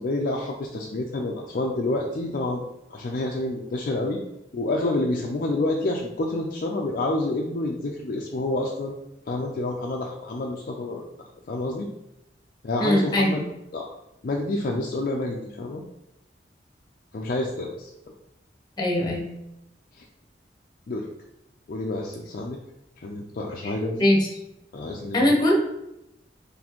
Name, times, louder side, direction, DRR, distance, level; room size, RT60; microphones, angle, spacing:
voice 1, 0.0-2.6 2.9-4.2 4.5-8.9 9.3-11.0 11.5-11.9 12.6-13.4 13.7-13.9 14.2-15.8 17.1-17.9 20.0-20.1 20.9-21.1 21.7-22.6 23.0-24.1 24.7-25.3, left 2 dB, 50° left, 0 dB, 0.4 m, -28 dB
voice 2, 12.8-13.4 18.8-19.3 23.6-23.7 24.0-24.3 25.1-25.5, left 1 dB, 25° left, -1 dB, 1.0 m, -21 dB
4.2 x 3.2 x 3.0 m, 0.86 s
head